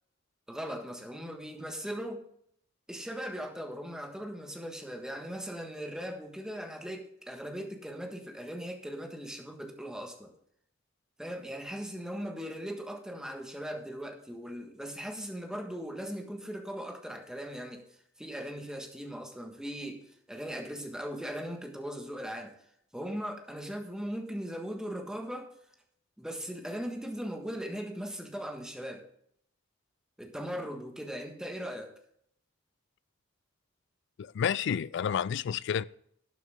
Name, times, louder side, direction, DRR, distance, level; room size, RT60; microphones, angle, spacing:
voice 1, 0.5-2.2 2.9-10.3 11.2-22.5 22.9-25.5 26.2-29.1 30.2-31.9, equal, 5° right, 1.5 m, -39 dB
voice 2, 34.2-35.8, left 8 dB, 60° left, 0.3 m, -30 dB
12.5 x 9.2 x 3.6 m
head